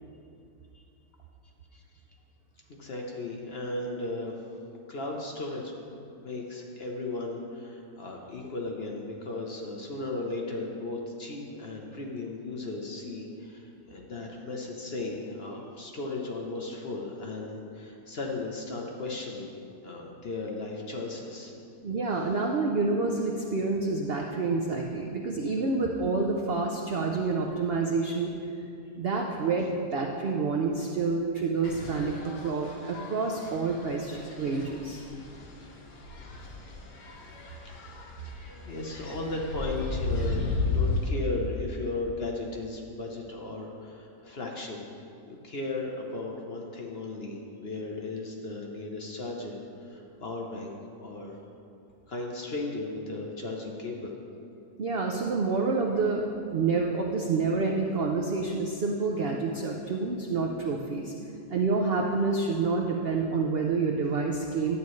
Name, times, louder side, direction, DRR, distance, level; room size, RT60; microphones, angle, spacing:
voice 1, 2.7-4.4 4.9-5.7 6.1-19.5 19.8-21.5 37.6-38.0 38.5-44.8 45.2-51.4 52.1-54.1, left 2 dB, 50° left, 0 dB, 0.8 m, -36 dB
voice 2, 21.8-28.3 29.0-35.0 54.8-56.3 56.5-61.1 61.5-64.8, right 4 dB, 80° right, 1 dB, 0.5 m, -28 dB
sound 1, 31.6-41.1, left 3 dB, 80° left, 1.7 m, -34 dB
11.0 x 8.5 x 3.1 m, 2.6 s
omnidirectional pair, 1.8 m